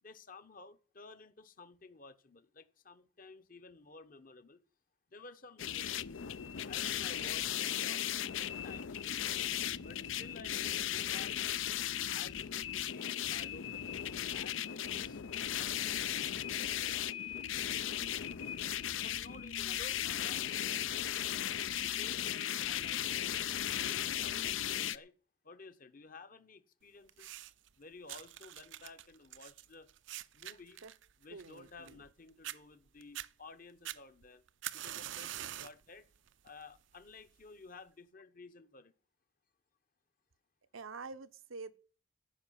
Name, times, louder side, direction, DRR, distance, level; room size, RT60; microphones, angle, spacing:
voice 1, 0.0-4.6 5.1-6.2 6.7-8.0 8.4-9.5 9.8-11.4 12.0-18.0 19.0-21.3 21.7-25.1 25.4-27.3 27.8-29.9 30.3-30.8 31.2-34.4 34.7-36.1 36.4-38.9, left 3 dB, 45° left, 1.0 m, -54 dB
sound 1, 5.6-25.0, left 10 dB, 75° left, 0.5 m, -36 dB
sound 2, 27.1-27.7 28.1-32.1 32.4-32.6 33.0-33.3 33.8-35.8 36.3-36.6 37.4-37.5, right 13 dB, 65° right, 0.5 m, -45 dB
voice 2, 31.3-32.0 40.7-41.7, right 4 dB, 85° right, 0.9 m, -47 dB
15.0 x 5.6 x 9.2 m
head